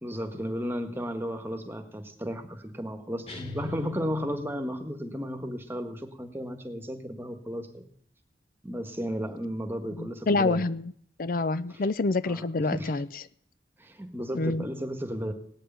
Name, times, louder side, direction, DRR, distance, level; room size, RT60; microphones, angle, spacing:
voice 1, 0.0-7.8 8.6-10.6 12.2-12.4 12.7-12.9 13.8-15.3, equal, 15° right, 6 dB, 1.5 m, -34 dB
sound 1, 3.3-5.0, left 4 dB, 35° left, 3.0 m, -41 dB
voice 2, 10.0-10.8 11.2-13.2 14.3-14.6, left 3 dB, 50° left, 15 dB, 0.5 m, -27 dB
18.5 x 6.7 x 9.1 m, 0.63 s
head